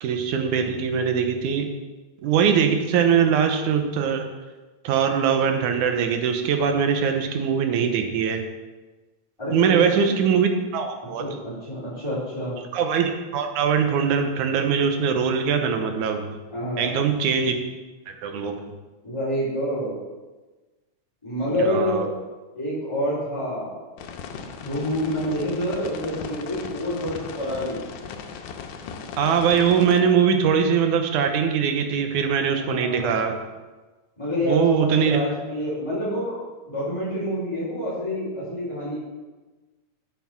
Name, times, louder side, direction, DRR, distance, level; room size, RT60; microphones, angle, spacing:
voice 1, 0.0-1.7 2.2-4.3 4.8-8.4 9.5-11.2 12.7-16.3 16.8-17.6 18.1-18.6 21.5-22.1 29.2-33.4 34.5-35.2, right 7 dB, 75° right, 5 dB, 2.4 m, -22 dB
voice 2, 9.4-9.7 11.1-12.6 16.5-16.9 19.0-20.0 21.2-22.0 22.5-23.8 24.6-27.8 32.5-33.4 34.2-36.4 36.7-39.0, equal, 10° left, -12 dB, 3.9 m, -27 dB
sound 1, 24.0-30.0, left 6 dB, 85° left, 2.3 m, -37 dB
9.3 x 7.2 x 5.9 m, 1.2 s
omnidirectional pair, 3.6 m